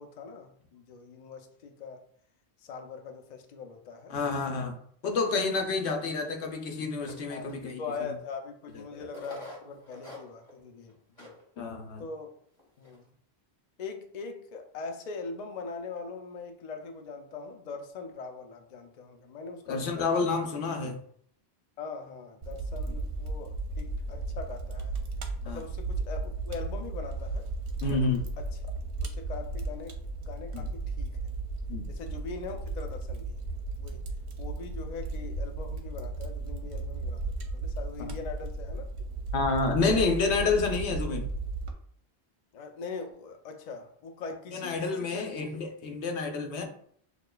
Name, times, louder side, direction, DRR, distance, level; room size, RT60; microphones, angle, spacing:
voice 1, 0.0-2.0 2.6-4.1 7.3-11.3 12.0-12.3 12.8-13.1 13.8-20.1 21.8-25.0 25.4-27.5 27.9-28.0 28.4-28.5 29.0-30.0 30.3-31.1 31.9-33.4 33.8-34.0 34.4-37.2 37.5-38.8 39.8-40.2 42.5-45.6, left 4 dB, 50° left, 0.6 m, -41 dB
voice 2, 4.1-4.7 5.0-7.8 8.9-9.1 11.6-12.0 19.7-21.0 25.4-25.6 27.8-28.2 30.5-30.6 31.7-31.9 39.3-41.3 44.5-46.6, left 4 dB, 80° left, 1.0 m, -29 dB
sound 1, 7.1-7.5 8.3-8.4 9.1-10.6 10.9-11.0 11.2-11.4 11.9-12.0 12.6-13.0, left 2 dB, 30° left, 1.3 m, -45 dB
Fire, 22.4-41.7, right 3 dB, 80° right, 0.9 m, -35 dB
6.4 x 2.4 x 2.2 m
omnidirectional pair, 1.1 m